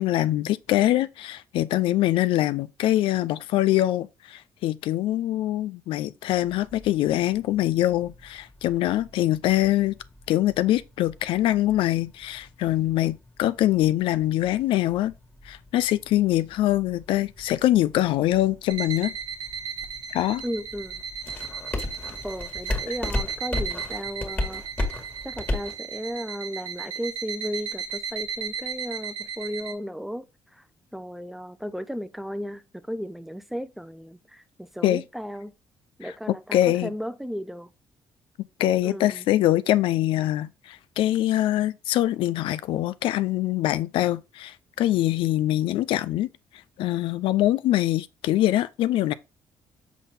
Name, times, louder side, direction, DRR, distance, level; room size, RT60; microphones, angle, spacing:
voice 1, 0.0-9.9 10.3-15.1 15.5-19.1 20.1-20.4 34.8-35.0 36.3-36.9 38.6-46.3 46.8-49.1, left 14 dB, 85° left, 0.4 m, -23 dB
sound 1, 6.3-25.8, left 2 dB, 20° left, 1.9 m, -37 dB
sound 2, 18.7-29.7, right 6 dB, 60° right, 1.3 m, -35 dB
voice 2, 20.4-21.0 22.2-24.6 25.2-30.3 30.5-30.6 30.9-35.5 36.0-37.7 38.8-39.3, equal, ahead, 0.6 m, -35 dB
7.3 x 4.0 x 3.7 m
cardioid pair, 115°, 9 cm